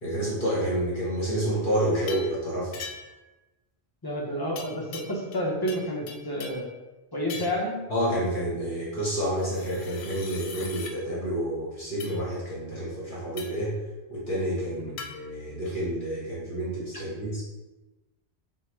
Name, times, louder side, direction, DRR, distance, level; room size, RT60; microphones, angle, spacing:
voice 1, 0.0-2.8 7.9-13.7 14.1-17.4, right 1 dB, 50° left, -7 dB, 1.2 m, -29 dB
sound 1, 2.1-2.4 2.7-3.2 4.6-5.4 5.7-6.7 7.3-7.7 9.4-11.0 12.0-12.2 13.4-13.7 15.0-15.1, left 5 dB, 85° left, 0.9 m, -41 dB
voice 2, 4.0-6.7 7.1-7.8 14.8-14.9 16.9-17.0, equal, 25° left, -1 dB, 0.6 m, -30 dB
4.5 x 2.1 x 4.5 m, 1.1 s
omnidirectional pair, 1.1 m